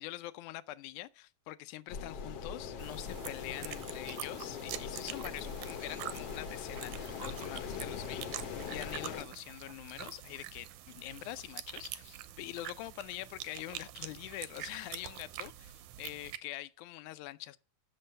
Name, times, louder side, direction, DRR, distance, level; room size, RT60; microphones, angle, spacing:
voice 1, 0.0-17.6, left 16 dB, 80° left, 2.0 m, -44 dB
sound 1, 1.9-9.2, left 6 dB, 60° left, 2.0 m, -41 dB
sound 2, 2.8-16.4, right 13 dB, 80° right, 2.2 m, -46 dB
8.6 x 6.7 x 6.4 m
omnidirectional pair, 3.6 m